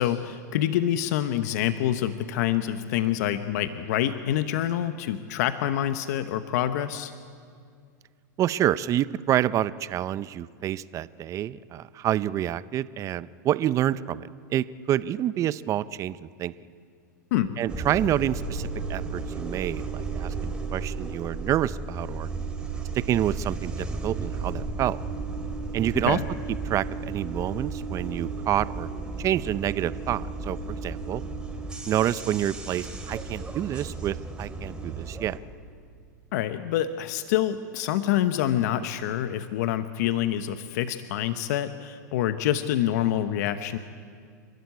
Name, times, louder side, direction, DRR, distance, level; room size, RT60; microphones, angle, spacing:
voice 1, 0.0-7.1 17.3-17.6 26.0-26.3 36.3-43.8, left 11 dB, 65° left, 10 dB, 1.0 m, -26 dB
voice 2, 8.4-16.5 17.6-22.3 22.9-25.0 25.7-26.2 26.6-28.9 29.2-31.2 31.9-35.4, right 12 dB, 30° right, 16 dB, 0.6 m, -28 dB
sound 1, 17.7-35.4, right 3 dB, 10° right, 2.9 m, -34 dB
29.5 x 12.5 x 9.5 m, 2.2 s
hypercardioid pair, 115°, 10 cm